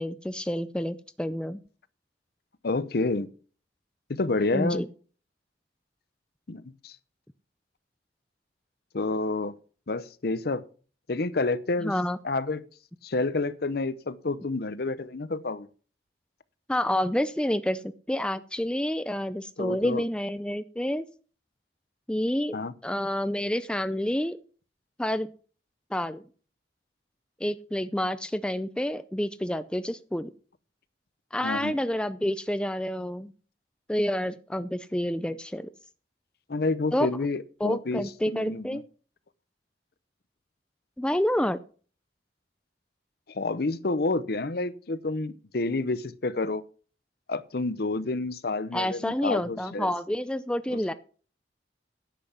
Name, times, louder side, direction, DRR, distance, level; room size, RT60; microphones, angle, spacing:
voice 1, 0.0-1.6 4.5-4.9 11.8-12.2 16.7-21.0 22.1-22.6 22.8-24.4 25.0-25.3 25.9-26.2 27.4-30.3 31.3-33.3 33.9-35.7 36.9-37.1 37.6-38.8 41.0-41.6 48.7-50.9, left 1 dB, 5° left, 0.4 m, -28 dB
voice 2, 2.6-3.3 4.1-4.8 6.5-7.0 8.9-9.5 9.9-10.6 11.1-11.9 12.2-12.6 13.0-15.7 19.6-20.0 22.5-22.7 31.4-31.7 36.5-38.8 43.3-46.6 47.3-49.9 50.7-50.9, left 3 dB, 60° left, 0.7 m, -29 dB
10.5 x 7.6 x 5.9 m
head